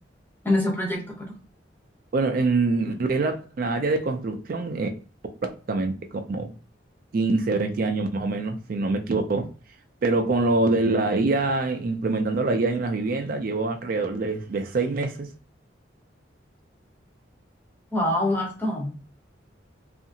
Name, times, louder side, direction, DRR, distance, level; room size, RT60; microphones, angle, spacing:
voice 1, 0.4-1.3 17.9-18.9, left 1 dB, 10° left, 0.6 m, -25 dB
voice 2, 2.1-4.9 5.7-5.9 6.3-6.5 7.1-9.5 10.0-15.3, right 3 dB, 50° right, 0.3 m, -24 dB
2.7 x 2.4 x 2.6 m
head